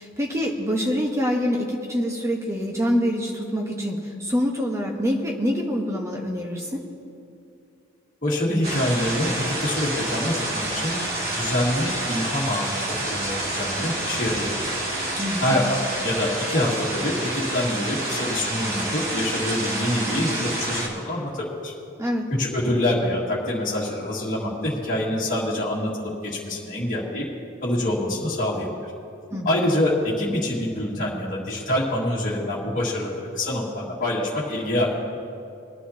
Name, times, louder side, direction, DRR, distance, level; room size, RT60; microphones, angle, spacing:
voice 1, 0.0-6.8 15.2-15.6 22.0-22.3 29.3-29.6, equal, 15° right, 0 dB, 1.1 m, -25 dB
voice 2, 8.2-11.0 11.3-14.8 15.4-21.7 22.4-27.3 27.6-28.9 29.5-35.0, left 1 dB, 35° left, -8 dB, 1.9 m, -26 dB
sound 1, 8.6-20.9, right 1 dB, 45° right, 2.0 m, -28 dB
21.5 x 10.0 x 2.8 m, 2.6 s
head